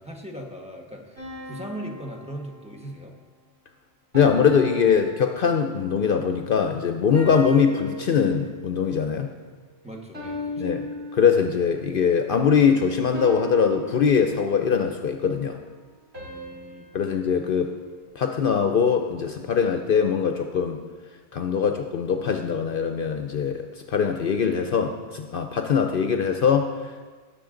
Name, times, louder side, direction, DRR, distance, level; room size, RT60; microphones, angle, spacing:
voice 1, 0.0-3.2 9.8-10.9 16.2-17.3, right 1 dB, 5° right, 1 dB, 1.2 m, -39 dB
sound 1, 1.2-3.1 4.1-5.8 7.1-8.7 10.1-11.8 13.1-14.8 16.1-18.5, equal, 70° right, 3.9 m, -38 dB
voice 2, 4.1-9.3 10.6-10.9 11.1-15.6 16.9-17.7 18.2-20.8 21.3-23.6 23.9-27.1, left 6 dB, 60° left, 6 dB, 0.8 m, -22 dB
18.5 x 6.8 x 3.8 m, 1.4 s
omnidirectional pair, 1.1 m